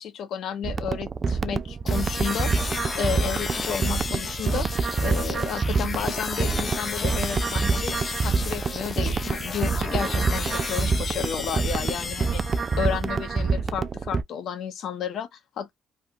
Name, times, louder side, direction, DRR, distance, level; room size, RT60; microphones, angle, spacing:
voice 1, 0.0-2.5 2.9-4.7 5.0-8.0 8.2-12.4 12.8-15.7, left 8 dB, 75° left, 1.1 m, -32 dB
sound 1, 0.6-14.2, right 4 dB, 40° right, 0.4 m, -26 dB
sound 2, 1.9-13.0, left 4 dB, 40° left, 0.7 m, -33 dB
3.4 x 2.3 x 2.6 m
cardioid pair, 90°, 0 cm